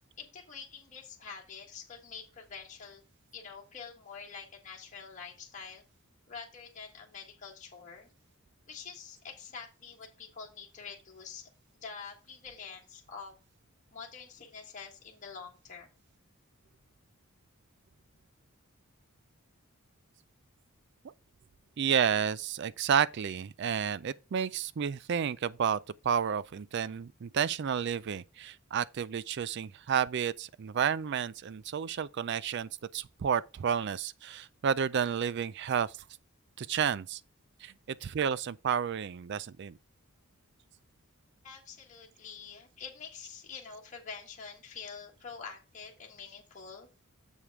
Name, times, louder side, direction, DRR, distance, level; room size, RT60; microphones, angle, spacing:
voice 1, 0.2-5.8 6.3-8.1 8.7-13.3 13.9-15.9 41.4-46.9, left 6 dB, 35° left, 1.4 m, -46 dB
voice 2, 21.8-25.8 26.0-35.9 36.6-37.2 37.6-39.8, right 7 dB, 50° right, 0.3 m, -31 dB
7.3 x 5.0 x 4.6 m
head